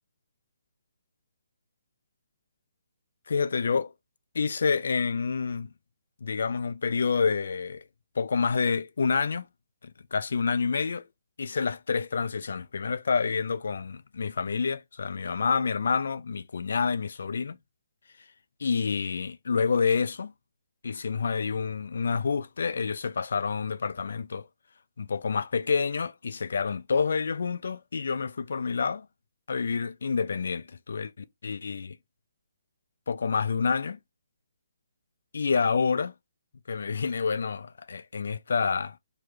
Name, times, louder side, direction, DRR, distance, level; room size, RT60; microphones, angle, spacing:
voice 1, 3.3-3.9 4.3-5.7 6.2-7.8 8.2-9.5 10.1-11.0 11.4-17.6 18.6-20.3 20.8-24.4 25.0-29.1 29.5-32.0 33.1-34.0 35.3-36.1 36.7-39.0, left 5 dB, 60° left, 0.4 m, -28 dB
3.1 x 2.2 x 3.4 m
figure-of-eight pair, 135°, 0 cm